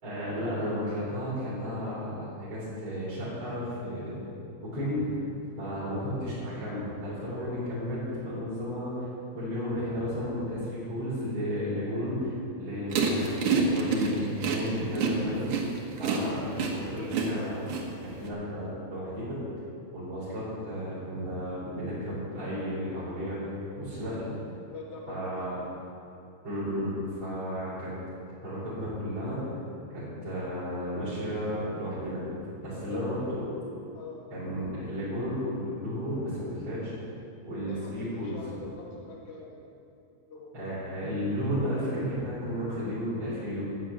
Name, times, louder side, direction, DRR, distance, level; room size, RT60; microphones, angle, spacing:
voice 1, 0.0-4.2 4.6-5.2 5.6-9.1 9.3-15.5 16.0-19.4 19.9-24.3 25.1-25.6 26.4-27.9 28.4-29.4 29.9-32.3 32.6-33.4 34.3-36.9 37.4-38.4 40.5-43.6, equal, 40° right, -11 dB, 5.1 m, -33 dB
sound 1, 12.9-18.3, right 5 dB, 85° right, 2.9 m, -28 dB
voice 2, 24.7-25.6 32.7-33.0 33.9-34.3 37.7-39.6 40.1-40.6, left 3 dB, 55° left, -2 dB, 2.8 m, -44 dB
13.5 x 9.1 x 7.5 m, 2.6 s
omnidirectional pair, 3.3 m